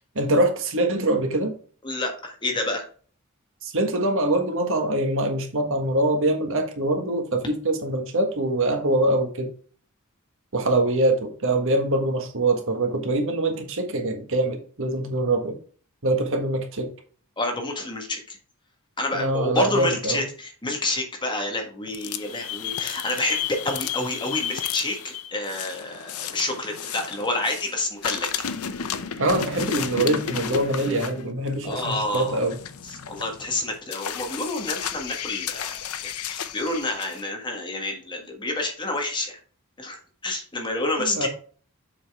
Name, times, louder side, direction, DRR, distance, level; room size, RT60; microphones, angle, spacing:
voice 1, 0.1-1.5 3.6-9.5 10.5-15.6 16.0-16.9 19.1-20.2 29.2-32.6 41.0-41.3, right 1 dB, 65° right, 4 dB, 1.5 m, -24 dB
voice 2, 1.8-2.8 17.4-18.4 19.0-28.3 31.6-32.4 32.9-39.4 39.8-41.3, left 2 dB, 20° left, 2 dB, 1.5 m, -29 dB
sound 1, 21.9-27.7 28.0-37.2, left 8 dB, 85° left, 0.7 m, -33 dB
7.3 x 5.4 x 3.5 m, 0.42 s
head